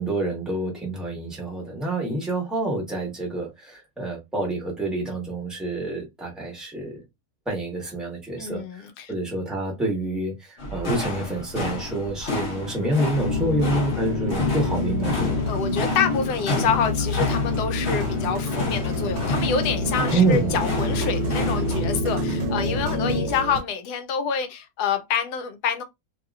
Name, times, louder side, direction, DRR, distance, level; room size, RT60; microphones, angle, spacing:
voice 1, 0.0-7.0 7.5-15.4 20.1-20.5, right 2 dB, ahead, 1.2 m, -27 dB
voice 2, 8.4-9.1 15.5-25.8, left 6 dB, 85° left, 1.2 m, -27 dB
sound 1, 10.6-21.9, left 2 dB, 45° left, 1.4 m, -31 dB
sound 2, 12.0-12.1 12.4-23.6, right 7 dB, 75° right, 1.1 m, -33 dB
sound 3, 13.1-23.5, left 4 dB, 70° left, 1.5 m, -27 dB
3.0 x 2.8 x 2.4 m
omnidirectional pair, 1.7 m